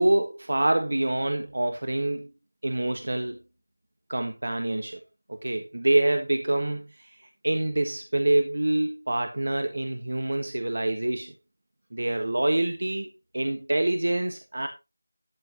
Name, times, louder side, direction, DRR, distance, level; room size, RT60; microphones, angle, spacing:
voice 1, 0.0-2.3 2.6-3.4 4.1-5.0 5.3-7.2 7.4-11.3 11.9-14.7, right 1 dB, 50° right, 6 dB, 1.5 m, -26 dB
12.5 x 10.5 x 3.0 m, 0.25 s
figure-of-eight pair, 175°, 0 cm